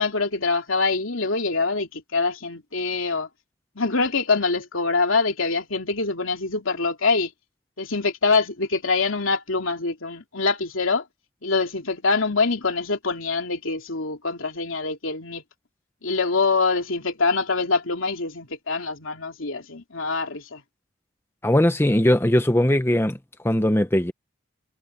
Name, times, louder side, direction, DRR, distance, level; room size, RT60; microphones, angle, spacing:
voice 1, 0.0-3.3 3.7-7.3 7.8-11.0 11.4-15.4 16.0-20.6, left 4 dB, 80° left, 2.8 m, -24 dB
voice 2, 21.4-23.2 23.4-24.1, left 1 dB, 10° left, 0.8 m, -19 dB
head